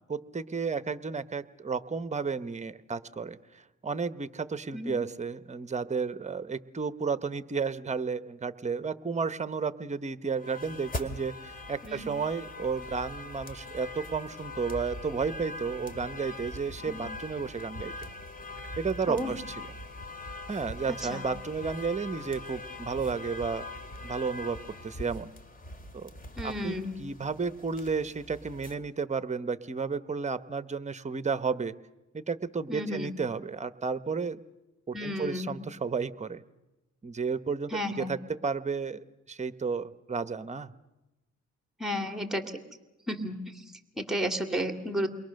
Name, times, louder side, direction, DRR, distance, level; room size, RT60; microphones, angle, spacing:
voice 1, 0.1-17.9 18.8-19.6 20.5-23.7 24.0-25.3 25.9-26.1 26.4-31.7 32.1-34.4 34.9-36.4 37.0-39.0 39.3-40.7, right 5 dB, 25° right, 14 dB, 1.0 m, -32 dB
sound 1, 10.4-28.8, left 2 dB, 30° left, 2.4 m, -42 dB
voice 2, 26.4-26.9 32.7-33.1 34.9-35.6 37.7-38.1 41.8-42.4 43.1-43.4 44.0-45.1, equal, ahead, 7 dB, 2.5 m, -32 dB
28.5 x 22.5 x 6.5 m, 1.0 s
cardioid pair, 90°, 30 cm